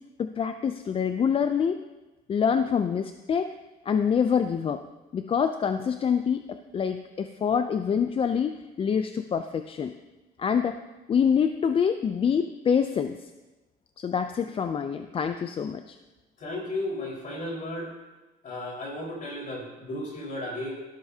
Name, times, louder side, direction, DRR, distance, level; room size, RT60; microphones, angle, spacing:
voice 1, 0.2-1.8 2.3-3.5 3.9-4.8 5.1-9.9 10.4-10.8 11.1-13.3 14.0-16.0, left 7 dB, 35° left, 9 dB, 0.5 m, -26 dB
voice 2, 16.4-17.9 18.4-20.7, left 1 dB, 50° left, -2 dB, 4.6 m, -34 dB
14.0 x 12.0 x 2.8 m, 1.1 s
cardioid pair, 110°, 17 cm